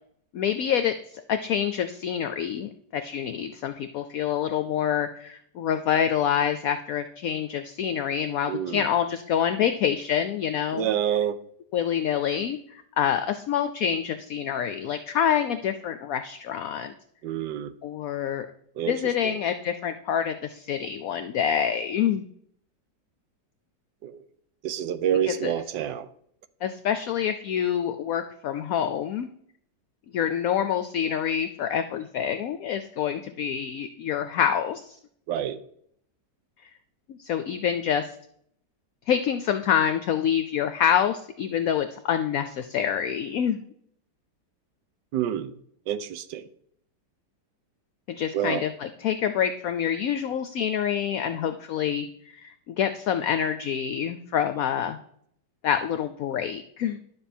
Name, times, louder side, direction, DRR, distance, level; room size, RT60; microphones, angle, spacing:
voice 1, 0.3-10.9 11.7-16.9 17.8-18.5 18.9-22.3 25.3-25.5 26.6-29.3 30.1-35.0 37.1-38.1 39.1-43.7 48.1-55.0 55.6-57.0, left 9 dB, 65° left, 10 dB, 0.9 m, -27 dB
voice 2, 8.5-8.8 10.7-11.4 17.2-17.7 18.8-19.0 19.2-19.4 24.0-24.2 24.6-26.1 35.3-35.6 45.1-45.5 45.9-46.5 48.3-48.6, right 10 dB, 90° right, 13 dB, 1.3 m, -27 dB
11.0 x 7.1 x 4.4 m, 0.68 s
omnidirectional pair, 1.9 m